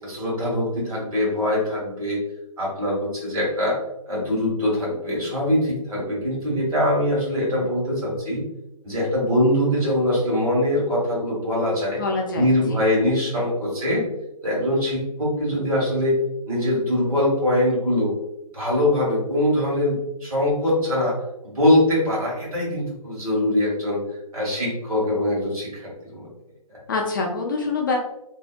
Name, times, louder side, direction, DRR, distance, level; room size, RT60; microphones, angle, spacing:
voice 1, 0.0-2.2 2.6-3.8 4.1-8.4 8.8-12.0 12.3-14.0 14.4-16.1 16.5-18.1 18.5-21.1 21.4-24.0 24.3-26.3, left 1 dB, 70° right, -4 dB, 1.4 m, -22 dB
voice 2, 12.0-12.8 26.9-28.0, left 3 dB, 35° left, 0 dB, 0.4 m, -25 dB
2.6 x 2.0 x 2.4 m, 0.89 s
figure-of-eight pair, 135°, 20 cm